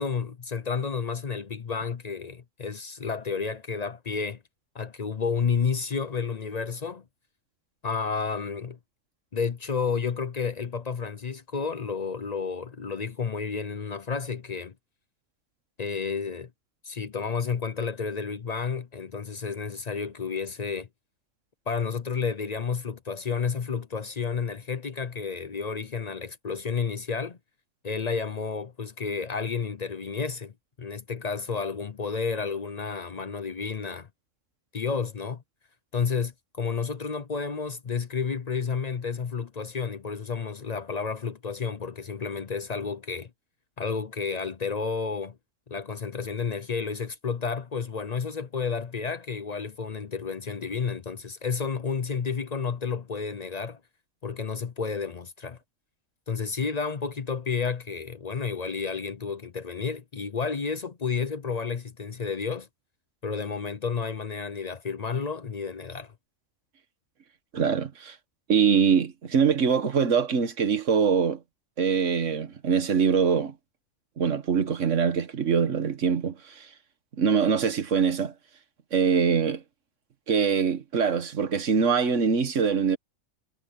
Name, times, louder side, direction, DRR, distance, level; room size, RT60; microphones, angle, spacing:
voice 1, 0.0-4.4 4.7-7.0 7.8-8.8 9.3-14.7 15.8-16.5 16.8-20.9 21.7-27.4 27.8-30.5 30.8-34.1 34.7-35.4 35.9-43.3 43.8-45.4 45.7-53.8 54.2-55.6 56.3-62.7 63.2-66.1, left 5 dB, 45° left, 0.6 m, -31 dB
voice 2, 67.5-68.1 68.5-71.4 71.8-73.5 74.2-76.7 77.2-78.3 78.9-79.6 80.3-83.0, right 6 dB, 65° right, 1.6 m, -23 dB
omnidirectional pair, 1.4 m